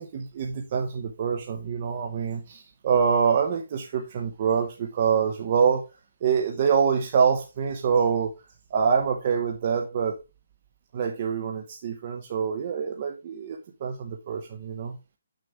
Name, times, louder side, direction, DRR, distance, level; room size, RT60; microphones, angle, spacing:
voice 1, 0.0-5.9 6.2-8.3 8.7-10.2 10.9-15.0, right 6 dB, 30° right, 2 dB, 0.8 m, -25 dB
7.5 x 6.3 x 3.5 m, 0.27 s
hypercardioid pair, 175°, 0 cm